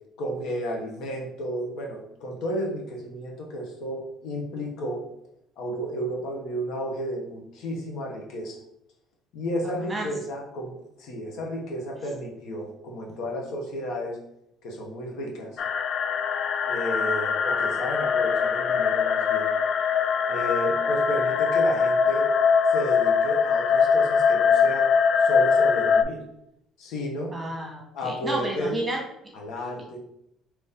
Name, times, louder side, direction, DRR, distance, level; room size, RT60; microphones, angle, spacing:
voice 1, 0.2-5.0 5.6-8.6 9.3-14.2 14.6-15.6 16.7-19.5 20.3-22.3 22.7-24.9 25.2-26.2 26.8-27.4 27.9-28.8 29.3-30.0, equal, 65° left, 0 dB, 1.1 m, -32 dB
voice 2, 9.6-10.1 27.3-29.0, right 1 dB, 15° right, 0 dB, 1.2 m, -31 dB
sound 1, 15.6-26.0, left 6 dB, 45° left, 0.3 m, -22 dB
4.1 x 3.0 x 3.6 m, 0.79 s
cardioid pair, 135°, 0 cm